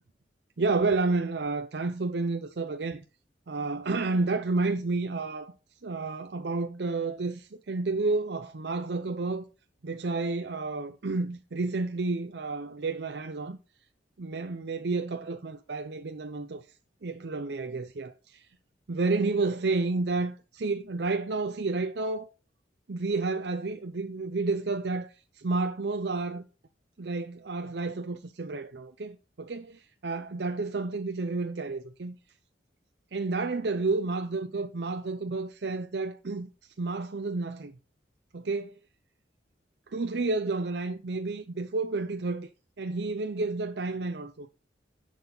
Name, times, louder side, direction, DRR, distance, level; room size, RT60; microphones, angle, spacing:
voice 1, 0.6-3.0 3.5-5.5 5.8-9.4 9.8-13.6 14.2-16.7 17.0-18.5 18.9-22.3 22.9-26.4 27.0-32.2 33.1-36.5 36.8-37.7 38.3-38.7 39.9-42.5 42.8-44.5, right 3 dB, 65° right, 0.6 m, -30 dB
10.5 x 6.3 x 3.9 m
head